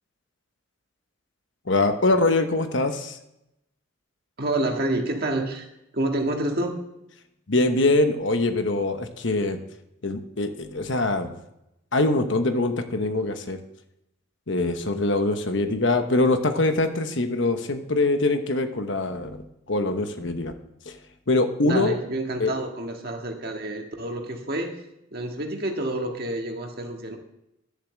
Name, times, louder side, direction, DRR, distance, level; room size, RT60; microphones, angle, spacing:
voice 1, 1.7-3.2 7.5-9.6 10.0-11.3 11.9-13.6 14.5-20.5 20.9-21.0 21.3-22.0 22.4-22.5, left 2 dB, 65° left, 7 dB, 1.1 m, -23 dB
voice 2, 4.4-5.6 5.9-6.7 21.6-24.7 25.1-27.2, right 1 dB, 50° right, 2 dB, 1.8 m, -28 dB
11.5 x 7.2 x 7.5 m, 0.84 s
head